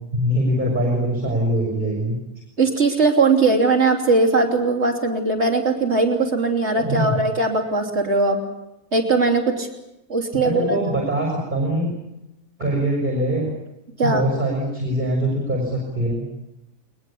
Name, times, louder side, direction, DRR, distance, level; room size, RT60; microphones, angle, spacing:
voice 1, 0.1-2.2 6.8-7.1 10.3-11.9 12.6-13.5 14.0-16.3, right 1 dB, 30° right, -1 dB, 6.1 m, -23 dB
voice 2, 2.6-8.4 8.9-9.7 10.1-10.8 14.0-14.2, right 3 dB, 45° right, 1 dB, 3.6 m, -19 dB
22.0 x 21.0 x 8.6 m, 0.89 s
omnidirectional pair, 1.6 m